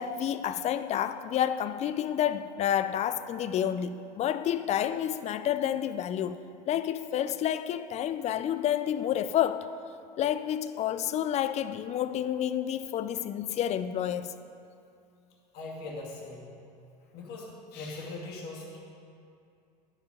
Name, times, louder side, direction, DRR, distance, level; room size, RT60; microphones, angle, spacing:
voice 1, 0.0-9.7 10.2-14.3, left 10 dB, 35° left, 0.4 m, -29 dB
voice 2, 15.5-16.5 17.0-18.8, left 2 dB, 50° left, 2.2 m, -41 dB
10.5 x 5.2 x 4.9 m
hypercardioid pair, 95°, 21 cm